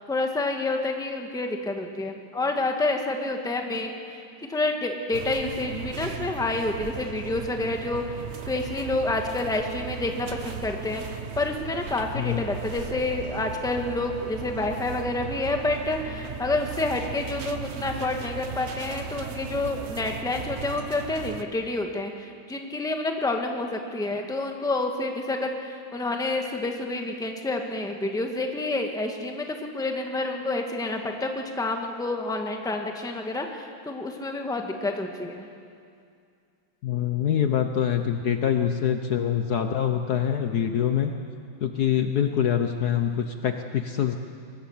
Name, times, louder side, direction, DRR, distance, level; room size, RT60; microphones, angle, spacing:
voice 1, 0.0-4.2 4.5-8.0 8.5-11.0 11.4-35.5, left 2 dB, ahead, 3 dB, 1.3 m, -28 dB
sound 1, 5.1-21.4, right 7 dB, 50° right, 0.9 m, -37 dB
voice 2, 12.1-12.5 36.8-41.1 41.6-44.2, left 9 dB, 60° left, 6 dB, 1.2 m, -25 dB
23.5 x 18.5 x 7.2 m, 2.3 s
omnidirectional pair, 2.2 m